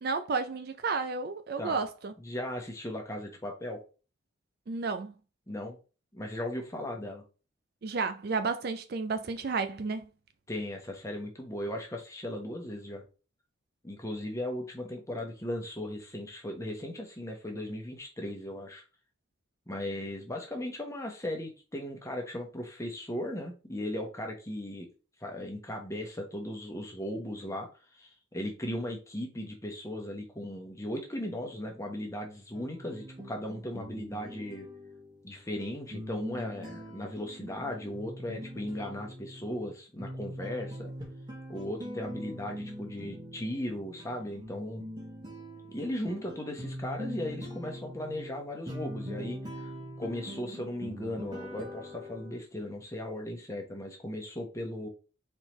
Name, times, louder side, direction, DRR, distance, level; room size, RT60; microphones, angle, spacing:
voice 1, 0.0-2.1 4.7-5.1 7.8-10.0, right 4 dB, 50° right, 0.4 m, -32 dB
voice 2, 2.2-3.8 5.5-5.8 6.1-7.2 10.5-13.0 13.8-18.8 19.7-24.9 25.2-27.7 27.9-34.7 35.2-40.9 41.5-44.9 45.7-49.7 50.0-54.9, left 1 dB, 15° left, 1.1 m, -37 dB
sound 1, 32.5-52.4, equal, 20° right, 1.2 m, -43 dB
4.4 x 3.8 x 3.1 m
head